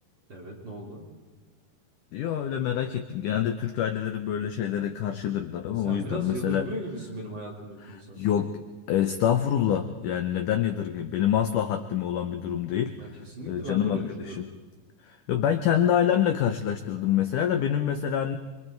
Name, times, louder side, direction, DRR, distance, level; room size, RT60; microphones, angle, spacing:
voice 1, 0.3-1.0 5.8-8.3 13.0-14.4, right 1 dB, 30° right, -3 dB, 3.7 m, -37 dB
voice 2, 2.1-6.7 7.8-8.5 8.9-13.2 13.5-14.4 15.0-18.4, left 10 dB, 90° left, 7 dB, 1.8 m, -26 dB
26.5 x 23.0 x 4.5 m, 1.4 s
omnidirectional pair, 4.7 m